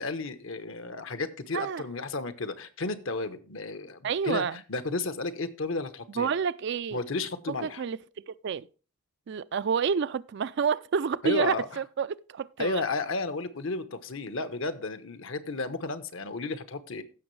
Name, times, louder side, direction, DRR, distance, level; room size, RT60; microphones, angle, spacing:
voice 1, 0.0-6.3 6.9-7.8 11.2-11.7 12.6-17.0, left 3 dB, 70° left, 1.0 m, -33 dB
voice 2, 4.0-4.6 6.2-7.0 7.6-8.7 9.3-12.7, right 6 dB, 55° right, 0.4 m, -29 dB
15.5 x 6.1 x 3.2 m
head